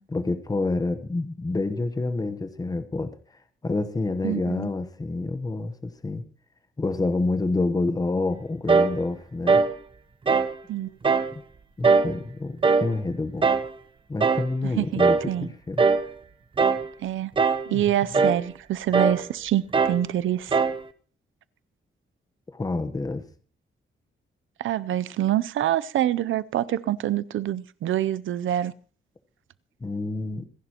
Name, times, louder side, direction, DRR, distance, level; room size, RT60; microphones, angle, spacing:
voice 1, 0.1-3.1 3.6-6.2 6.8-9.6 11.8-13.5 14.1-15.8 17.7-18.3 22.5-23.2 29.8-30.5, left 3 dB, 20° left, 1.0 m, -28 dB
voice 2, 4.2-4.7 10.7-10.9 14.6-15.5 17.0-17.3 17.7-20.6 24.6-28.7, right 12 dB, 85° right, 0.5 m, -26 dB
sound 1, 8.7-9.0 9.5-9.7 10.3-10.6 11.0-11.3 11.8-12.1 12.6-12.9 13.4-13.7 14.2-14.5 15.0-15.3 15.8-16.1 16.6-16.9 17.4-17.7 18.1-18.4 18.9-19.2 19.7-20.0 20.5-20.8, right 4 dB, 25° right, 0.7 m, -21 dB
26.5 x 11.0 x 2.9 m
wide cardioid pair, 155°, 20 cm